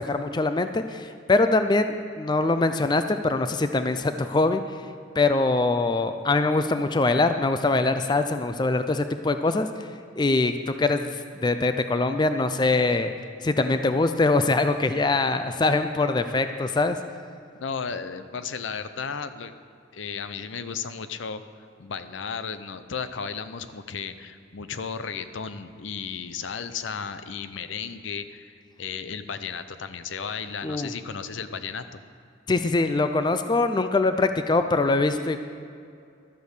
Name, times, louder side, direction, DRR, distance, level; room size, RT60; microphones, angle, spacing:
voice 1, 0.0-4.6 5.2-9.7 10.2-13.1 13.4-17.0 30.6-30.9 32.5-35.4, left 3 dB, 20° left, 9 dB, 0.4 m, -23 dB
voice 2, 17.6-19.5 19.9-21.4 21.8-32.0, left 6 dB, 80° left, 11 dB, 0.6 m, -34 dB
12.5 x 8.0 x 6.7 m, 2.3 s
head